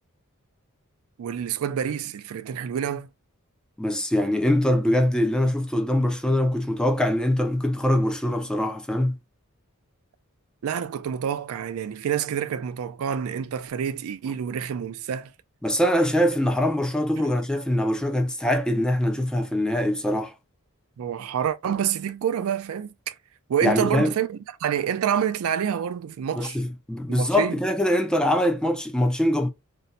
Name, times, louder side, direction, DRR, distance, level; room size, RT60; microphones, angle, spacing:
voice 1, 1.2-3.1 10.6-15.3 21.0-23.2 23.5-26.6 27.1-27.6, right 8 dB, 75° right, 0.3 m, -27 dB
voice 2, 3.8-9.2 15.6-20.3 23.6-24.1 26.4-29.5, left 1 dB, 5° left, 0.3 m, -23 dB
2.6 x 2.1 x 4.0 m
head